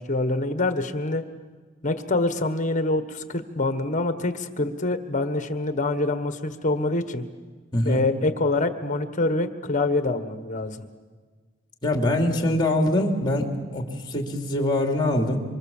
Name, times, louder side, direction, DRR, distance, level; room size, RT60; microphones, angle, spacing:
voice 1, 0.1-1.2 1.8-7.3 7.8-10.8, left 2 dB, 35° left, 9 dB, 1.4 m, -25 dB
voice 2, 7.7-8.0 11.8-15.4, left 1 dB, 20° left, 3 dB, 2.9 m, -23 dB
25.5 x 25.0 x 7.3 m, 1.5 s
head